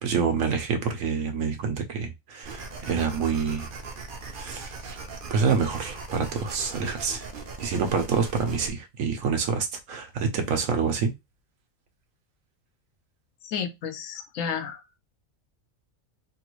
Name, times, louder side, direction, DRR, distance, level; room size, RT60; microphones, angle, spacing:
voice 1, 0.0-3.7 4.3-5.0 5.3-7.3 7.6-11.1, right 6 dB, 85° right, 1.2 m, -27 dB
sound 1, 2.4-8.7, right 3 dB, 50° right, 0.7 m, -39 dB
voice 2, 13.4-14.8, left 7 dB, 80° left, 1.0 m, -32 dB
3.0 x 2.5 x 3.0 m
omnidirectional pair, 1.3 m